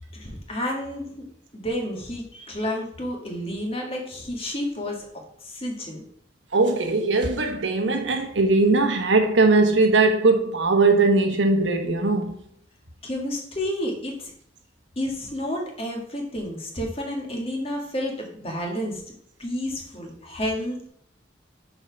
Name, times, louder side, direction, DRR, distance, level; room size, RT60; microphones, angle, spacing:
voice 1, 0.1-1.1 1.5-5.1 5.4-6.0 13.0-14.3 15.0-19.0 19.4-20.9, left 1 dB, 30° left, 1.9 m, -30 dB
voice 2, 6.5-12.4, right 3 dB, 80° right, 1.2 m, -20 dB
6.2 x 4.9 x 5.9 m
head